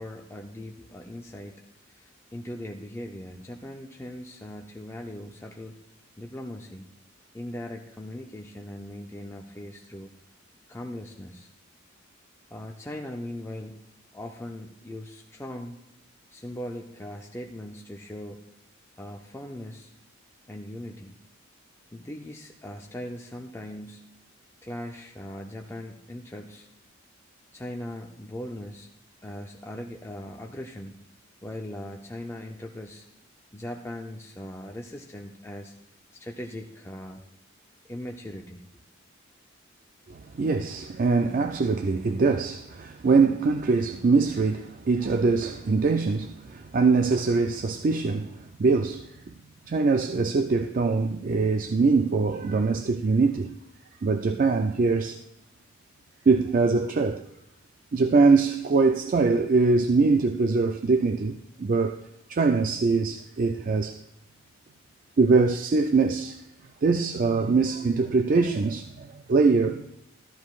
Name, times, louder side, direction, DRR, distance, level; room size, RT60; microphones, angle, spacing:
voice 1, 0.0-5.8 6.2-6.9 7.3-10.1 10.7-11.5 12.5-13.8 14.1-15.8 16.3-18.4 19.0-19.9 20.5-21.2 21.9-24.1 24.6-26.7 27.5-28.9 29.2-31.0 31.4-33.1 33.5-35.7 36.1-37.2 37.9-38.6 49.7-49.8, left 1 dB, 15° left, 0.5 m, -39 dB
voice 2, 40.1-49.3 49.7-53.5 54.0-55.2 56.3-57.2 57.9-62.0 62.3-64.0 65.2-66.4 66.8-69.8, right 4 dB, 40° right, 0.4 m, -23 dB
13.5 x 12.5 x 2.4 m
head